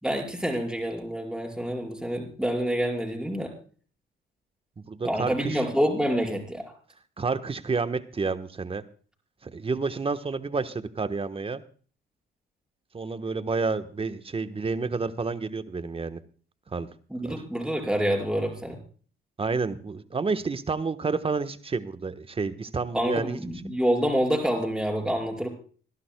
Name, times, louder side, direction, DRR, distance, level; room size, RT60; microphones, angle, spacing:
voice 1, 0.0-3.5 5.0-6.7 17.1-18.8 22.9-25.5, equal, 5° right, 1 dB, 5.0 m, -27 dB
voice 2, 4.8-5.6 7.2-8.8 9.4-11.6 12.9-16.2 16.7-16.9 17.2-17.3 19.4-23.4, right 4 dB, 30° right, 11 dB, 1.2 m, -30 dB
26.5 x 11.0 x 2.2 m, 0.42 s
cardioid pair, 90°, 20 cm